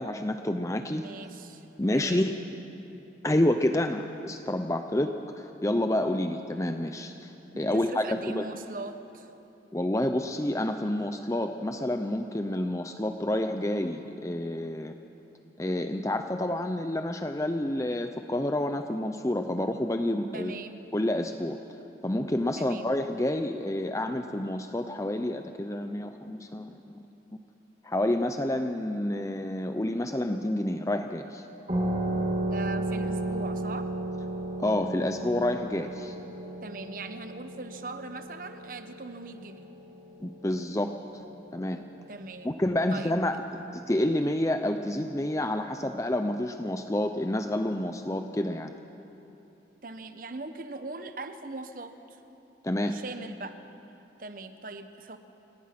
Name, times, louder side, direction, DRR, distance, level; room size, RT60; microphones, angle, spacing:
voice 1, 0.0-1.1 1.8-2.3 3.2-8.5 9.7-14.9 15.6-20.5 20.9-21.6 22.0-27.0 27.8-31.5 34.6-36.2 40.2-41.2 41.5-41.8 42.4-48.7 52.6-53.0, left 1 dB, 15° left, 6 dB, 0.6 m, -29 dB
voice 2, 0.9-1.6 1.9-2.3 7.7-9.3 20.3-20.8 22.6-22.9 32.4-33.9 36.6-39.7 42.1-42.6 42.9-43.1 49.8-52.2 52.9-53.6 54.2-55.2, right 3 dB, 50° right, 9 dB, 1.1 m, -40 dB
sound 1, 31.7-40.9, right 1 dB, 35° right, 3.1 m, -33 dB
29.0 x 18.5 x 6.0 m, 2.9 s
head